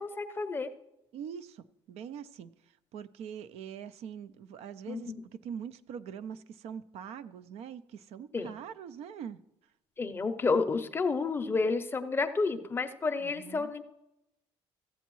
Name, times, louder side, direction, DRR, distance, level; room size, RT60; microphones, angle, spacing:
voice 1, 0.0-0.7 4.9-5.2 8.3-8.5 10.0-13.8, left 4 dB, 20° left, 0.6 m, -30 dB
voice 2, 1.1-2.5 2.9-9.4 13.2-13.7, right 8 dB, 70° right, 0.4 m, -43 dB
14.5 x 8.1 x 3.1 m
cardioid pair, 155°, 11 cm